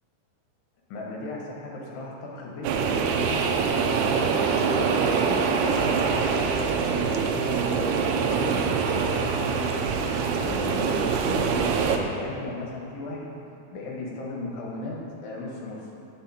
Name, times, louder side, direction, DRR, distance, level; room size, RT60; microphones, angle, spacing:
voice 1, 0.9-6.5 6.9-8.7 9.1-10.0 10.4-13.4 13.7-15.9, left 2 dB, 70° left, -2 dB, 3.2 m, -36 dB
sound 1, 2.6-12.0, right 5 dB, 80° right, 2.4 m, -24 dB
10.5 x 7.3 x 4.2 m, 2.6 s
omnidirectional pair, 5.1 m